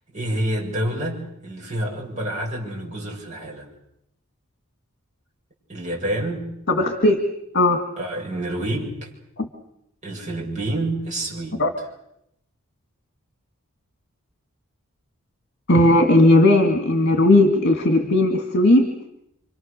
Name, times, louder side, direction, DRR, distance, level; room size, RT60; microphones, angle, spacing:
voice 1, 0.1-3.7 5.7-6.5 8.0-9.1 10.0-11.6, right 1 dB, 35° right, -2 dB, 7.5 m, -28 dB
voice 2, 6.7-7.2 7.5-7.8 9.4-9.5 11.6-11.7 15.7-18.9, left 1 dB, 50° left, 5 dB, 2.2 m, -16 dB
28.5 x 25.0 x 6.8 m, 0.80 s
head